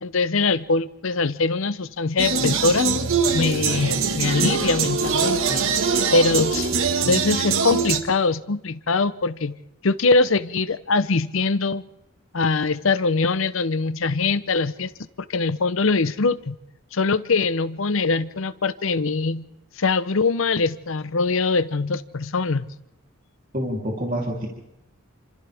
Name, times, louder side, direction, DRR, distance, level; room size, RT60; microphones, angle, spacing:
voice 1, 0.0-2.9 3.3-5.4 6.1-9.6 9.8-11.8 12.3-14.9 15.3-16.6 16.9-19.4 19.8-22.6, left 3 dB, 65° left, 15 dB, 0.8 m, -22 dB
sound 1, 2.2-8.0, right 5 dB, 70° right, 1.7 m, -22 dB
voice 2, 23.5-24.5, equal, 40° right, -2 dB, 3.4 m, -27 dB
28.5 x 26.5 x 3.5 m, 0.89 s
head